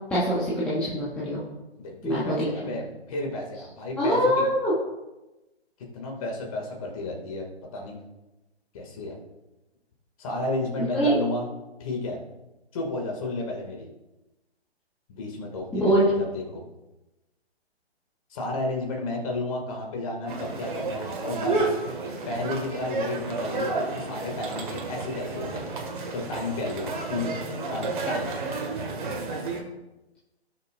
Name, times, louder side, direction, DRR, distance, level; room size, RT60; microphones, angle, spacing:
voice 1, 0.1-1.4 2.0-2.7 4.0-4.7 10.8-11.2 15.7-16.0, right 1 dB, 5° left, -8 dB, 0.9 m, -24 dB
voice 2, 1.8-4.4 5.9-7.5 7.7-8.0 8.7-9.2 10.2-11.5 11.8-12.2 12.7-13.9 15.1-16.6 18.3-21.6 22.3-25.7 26.1-27.3 27.7-28.4, left 2 dB, 30° left, 1 dB, 2.4 m, -32 dB
sound 1, 20.3-29.6, right 3 dB, 50° right, 2.1 m, -31 dB
17.0 x 6.6 x 2.6 m, 1.0 s
figure-of-eight pair, 145°, 33 cm